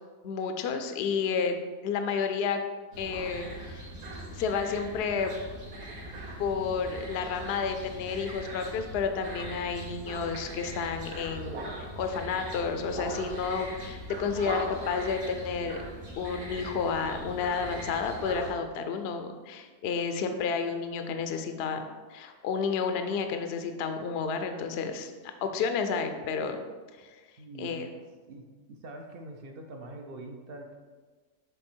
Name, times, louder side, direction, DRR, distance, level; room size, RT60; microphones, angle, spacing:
voice 1, 0.2-1.5 1.8-2.6 3.0-3.9 4.3-5.3 6.4-15.8 16.2-21.8 22.1-25.1 25.4-26.6 27.0-27.1 27.6-27.9, left 5 dB, 65° left, 7 dB, 0.6 m, -31 dB
sound 1, 2.9-18.5, right 1 dB, 90° right, 1.9 m, -40 dB
voice 2, 27.4-27.9 28.3-30.8, right 2 dB, 65° right, 3 dB, 0.5 m, -44 dB
6.9 x 3.5 x 4.4 m, 1.4 s
omnidirectional pair, 1.6 m